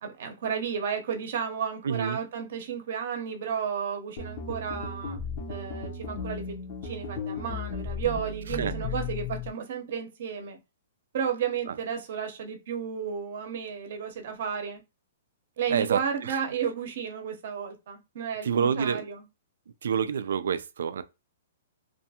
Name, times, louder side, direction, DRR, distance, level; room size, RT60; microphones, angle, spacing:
voice 1, 0.0-5.2 5.5-10.6 11.1-14.8 15.6-19.2, right 7 dB, 60° right, 0.7 m, -33 dB
voice 2, 1.8-2.2 8.5-8.8 11.7-11.8 15.7-16.4 18.4-19.0 19.8-21.0, right 7 dB, 80° right, 0.3 m, -28 dB
sound 1, 4.2-9.5, left 4 dB, 40° left, 0.7 m, -35 dB
2.5 x 2.2 x 2.8 m
hypercardioid pair, 155°, 0 cm